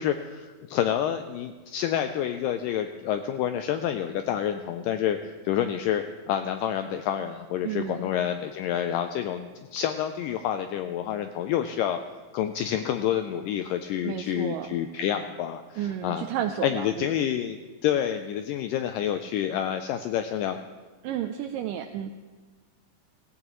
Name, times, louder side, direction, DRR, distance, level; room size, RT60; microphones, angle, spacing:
voice 1, 0.0-5.2 5.5-12.0 12.3-16.3 16.6-17.6 17.8-20.6, left 10 dB, 85° left, 7 dB, 1.9 m, -28 dB
voice 2, 7.6-8.1 14.0-14.8 15.8-17.1 21.0-22.1, right 10 dB, 85° right, 7 dB, 1.9 m, -32 dB
16.5 x 16.5 x 3.0 m, 1.3 s
omnidirectional pair, 4.3 m